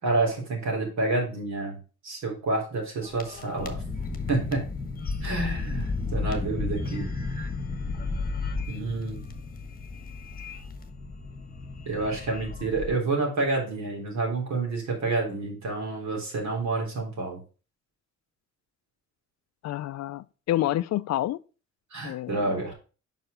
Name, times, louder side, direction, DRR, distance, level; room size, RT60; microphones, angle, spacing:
voice 1, 0.0-3.8 4.3-4.7 5.2-7.1 8.7-9.2 11.9-17.4 21.9-22.7, right 3 dB, 65° right, 3.6 m, -29 dB
sound 1, 3.0-12.9, left 3 dB, 30° left, 1.3 m, -33 dB
voice 2, 19.6-21.4 22.0-22.6, left 14 dB, 60° left, 0.4 m, -28 dB
5.5 x 4.8 x 5.0 m
cardioid pair, 90°, 30 cm